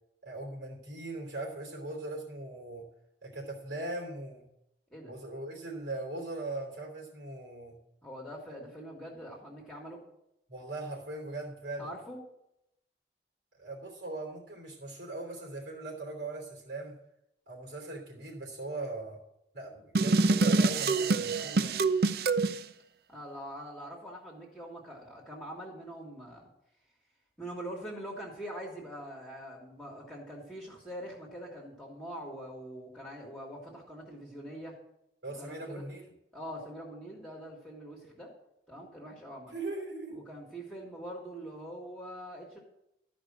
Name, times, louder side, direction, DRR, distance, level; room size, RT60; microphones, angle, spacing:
voice 1, 0.2-2.8 3.2-4.4 5.1-7.8 10.5-11.9 13.6-16.9 17.5-19.2 19.5-21.8 35.2-36.1 39.5-40.3, right 2 dB, 80° right, 0 dB, 3.1 m, -40 dB
voice 2, 8.0-10.0 11.8-12.2 23.1-26.5 27.4-34.8 35.4-35.9 36.3-38.3 38.7-39.5 40.1-42.6, equal, 5° left, -3 dB, 1.9 m, -43 dB
sound 1, 19.9-22.6, right 3 dB, 55° right, 0.5 m, -25 dB
13.0 x 5.2 x 7.4 m, 0.81 s
head